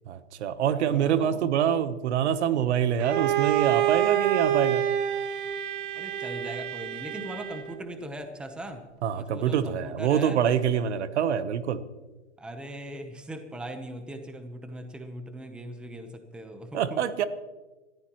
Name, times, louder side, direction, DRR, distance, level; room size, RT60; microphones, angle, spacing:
voice 1, 0.1-4.8 9.0-11.8 16.7-17.2, right 9 dB, 70° right, 13 dB, 1.1 m, -25 dB
voice 2, 0.9-1.4 5.9-8.8 9.1-10.4 12.4-17.0, right 1 dB, 5° right, 6 dB, 0.9 m, -39 dB
Bowed string instrument, 3.0-7.8, right 11 dB, 45° right, 1.3 m, -27 dB
25.0 x 14.5 x 3.1 m, 1.2 s
hypercardioid pair, 155°, 35 cm